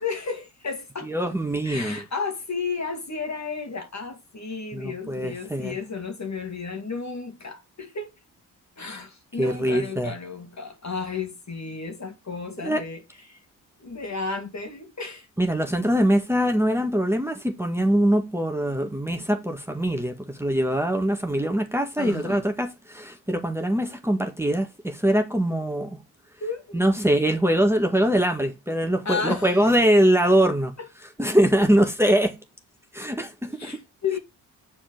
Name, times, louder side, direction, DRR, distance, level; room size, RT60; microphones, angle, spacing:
voice 1, 0.0-1.1 1.6-8.1 8.8-13.0 13.3-13.4 13.8-15.3 22.0-22.5 26.4-26.8 29.0-29.7 30.8-30.9 33.5-34.2, left 4 dB, 35° left, 2.4 m, -33 dB
voice 2, 1.1-2.0 4.7-5.8 9.4-10.1 12.6-12.8 15.4-26.0 26.7-30.7 31.2-32.4 32.9-33.7, right 1 dB, 5° right, 1.8 m, -23 dB
7.2 x 4.3 x 5.5 m
supercardioid pair, 50°, 45 cm